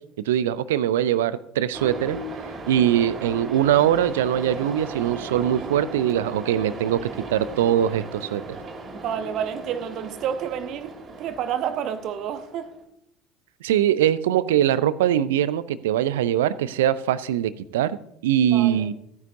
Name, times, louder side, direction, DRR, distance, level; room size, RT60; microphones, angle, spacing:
voice 1, 0.3-2.2 2.7-7.0 7.3-8.4 13.6-18.0 18.2-18.9, right 11 dB, 70° right, 0.5 m, -22 dB
sound 1, 1.7-12.8, right 2 dB, 35° right, 2.4 m, -37 dB
voice 2, 8.9-12.8 18.4-18.9, right 8 dB, 50° right, 0.9 m, -30 dB
14.5 x 9.5 x 2.7 m
figure-of-eight pair, 65°, 0 cm